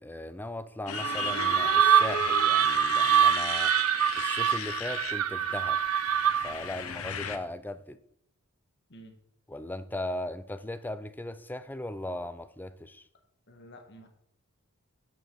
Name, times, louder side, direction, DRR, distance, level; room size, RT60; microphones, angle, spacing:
voice 1, 0.0-3.7 4.2-5.8 6.4-8.0 9.5-13.1, left 1 dB, 10° left, 0.5 m, -38 dB
Motorcycle, 0.9-7.4, left 7 dB, 70° left, 0.9 m, -36 dB
sound 1, 0.9-6.6, right 10 dB, 75° right, 0.4 m, -25 dB
voice 2, 13.5-14.1, equal, 50° left, 1.5 m, -51 dB
8.1 x 7.4 x 6.3 m
head